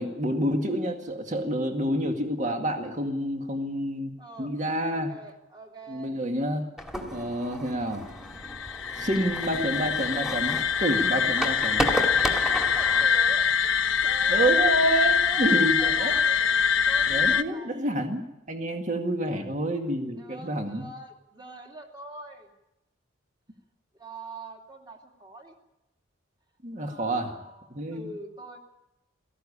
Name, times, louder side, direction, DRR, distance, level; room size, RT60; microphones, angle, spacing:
voice 1, 0.0-4.1 4.4-5.1 5.9-6.7 7.1-8.1 9.0-11.9 14.3-16.1 17.1-20.9 26.6-27.4 27.7-28.1, right 1 dB, 40° right, 4 dB, 2.0 m, -28 dB
voice 2, 4.2-4.5 4.9-6.2 9.0-9.2 12.2-13.5 14.0-14.7 15.2-16.5 16.9-17.9 19.2-19.5 20.1-22.5 23.9-25.5 26.8-28.6, right 2 dB, 20° right, 1 dB, 2.7 m, -43 dB
sound 1, 6.8-13.1, equal, ahead, 2.1 m, -33 dB
sound 2, 8.3-17.4, left 6 dB, 65° left, 0.8 m, -24 dB
17.5 x 15.0 x 10.0 m, 0.93 s
head